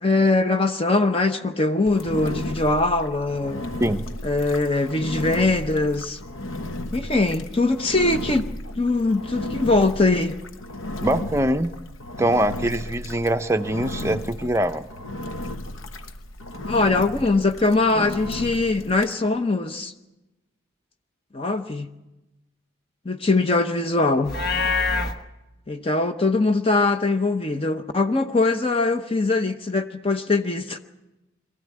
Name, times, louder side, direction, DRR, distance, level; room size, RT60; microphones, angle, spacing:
voice 1, 0.0-3.7 4.2-6.2 6.9-8.5 8.7-10.4 16.7-19.9 21.3-21.9 23.0-24.3 25.7-30.8, left 2 dB, 30° left, 7 dB, 0.8 m, -22 dB
Engine, 1.9-19.2, left 1 dB, 80° left, 1.2 m, -34 dB
voice 2, 11.0-11.7 12.2-14.8 18.0-18.1, right 1 dB, 15° right, 8 dB, 0.7 m, -23 dB
Livestock farm animals working animals, 24.2-25.1, left 3 dB, 50° left, 1.3 m, -24 dB
23.5 x 14.5 x 9.6 m, 1.0 s
head